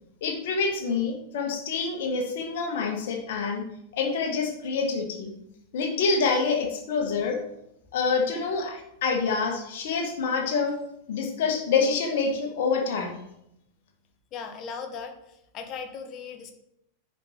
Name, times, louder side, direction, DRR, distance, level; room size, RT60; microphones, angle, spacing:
voice 1, 0.2-3.6 3.9-5.3 5.7-7.4 7.9-10.8 11.1-13.1, left 4 dB, 55° left, 2 dB, 1.5 m, -26 dB
voice 2, 14.3-16.5, left 6 dB, 35° left, 6 dB, 1.1 m, -38 dB
10.0 x 4.5 x 3.3 m, 0.80 s
figure-of-eight pair, 90°, 0 cm